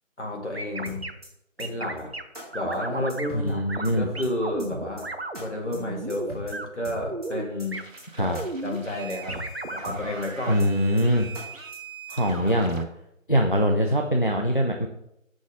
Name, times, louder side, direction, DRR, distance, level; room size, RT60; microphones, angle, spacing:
voice 1, 0.2-1.1 1.6-2.1 2.5-5.1 5.4-7.8 8.2-8.3 8.6-9.4 9.7-10.6, left 1 dB, 60° left, 0 dB, 2.1 m, -31 dB
sound 1, 0.5-1.1 1.6-2.2 2.5-3.3 3.7-3.9 4.1-5.4 5.7-6.7 7.0-7.5 7.7-7.8 8.3-8.8 9.3-9.9, right 2 dB, 50° right, 0.6 m, -34 dB
sound 2, 0.9-1.3 1.6-1.7 2.0-2.1 2.3-2.5 2.7-2.8 3.1-3.5 3.8-4.3 4.6-4.7 5.0-5.1 5.3-5.4 5.7-5.8 6.1-6.5 6.8-7.3 7.6-7.7 8.0-8.1 8.3-8.5 8.7-8.8 9.1-9.5 9.8-10.3 10.6-10.7 11.0-11.1 11.3-11.5 11.7-11.8 12.1-12.5, equal, 30° right, 2.4 m, -39 dB
voice 2, 3.4-4.1 8.1-8.4 10.5-11.3 12.1-12.8 13.3-14.9, equal, 40° left, 3 dB, 0.5 m, -23 dB
sound 3, 7.7-12.8, right 4 dB, 70° right, 1.3 m, -42 dB
7.0 x 6.2 x 3.7 m, 0.81 s
figure-of-eight pair, 170°, 40 cm